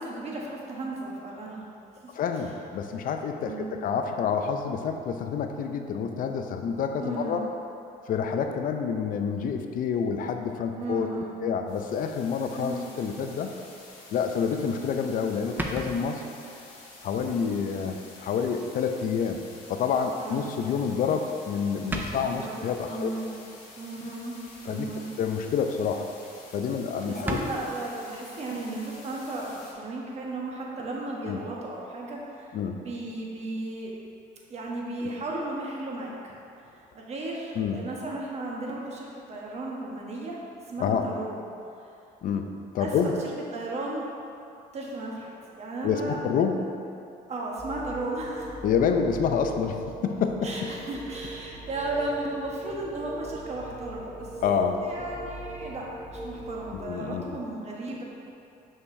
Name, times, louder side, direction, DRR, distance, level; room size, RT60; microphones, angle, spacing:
voice 1, 0.0-1.7 2.0-2.1 3.4-3.7 7.0-7.5 10.8-11.4 12.5-12.9 20.2-20.5 22.1-22.6 22.8-23.3 23.8-24.4 24.6-25.0 27.0-33.9 34.5-36.3 36.7-40.4 40.7-41.5 41.8-41.9 42.8-44.2 44.7-46.2 47.3-48.6 50.4-54.3 54.8-55.8 56.1-58.0, right 2 dB, 40° right, -3 dB, 1.1 m, -35 dB
voice 2, 2.1-7.4 8.1-11.1 11.4-13.5 14.1-16.2 17.0-19.4 19.7-23.1 24.6-24.9 25.2-26.1 26.5-27.4 31.2-31.4 32.5-32.8 35.0-35.1 37.6-37.8 40.8-41.0 42.2-42.5 42.7-43.1 45.8-46.6 48.6-50.7 54.4-54.8 56.7-57.4, left 6 dB, 55° left, 5 dB, 0.5 m, -28 dB
sound 1, 11.7-29.7, left 2 dB, 85° left, 1.3 m, -49 dB
sound 2, 15.6-16.5 17.1-17.4 17.9-18.0 19.2-19.3 21.0-21.3 21.6-21.7 21.9-22.5 24.5-24.9 25.3-25.6 25.9-26.0 26.2-26.3 26.6-26.7 27.0-27.6, right 2 dB, 10° right, 0.5 m, -35 dB
sound 3, 47.6-56.8, right 2 dB, 5° left, 1.1 m, -41 dB
6.4 x 5.6 x 2.7 m, 2.6 s
cardioid pair, 110°, 17 cm